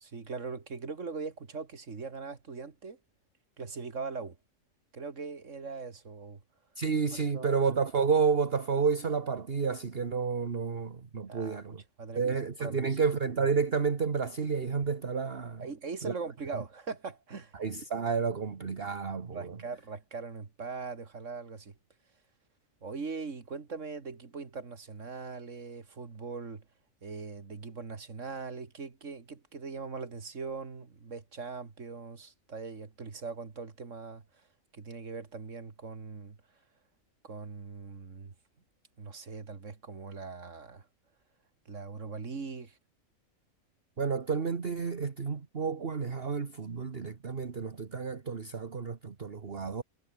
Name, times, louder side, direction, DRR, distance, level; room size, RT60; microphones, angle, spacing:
voice 1, 0.0-3.0 3.6-4.4 4.9-6.4 7.1-7.6 11.3-13.0 15.6-17.5 19.3-21.8 22.8-26.7 27.0-34.2 34.7-36.4 37.2-38.3 39.0-40.9 41.7-42.8, right 4 dB, 65° right, 2.5 m, -41 dB
voice 2, 6.8-11.8 12.1-15.7 16.0-16.1 17.5-19.6 44.0-49.8, right 5 dB, 45° right, 1.7 m, -30 dB
omnidirectional pair, 1.4 m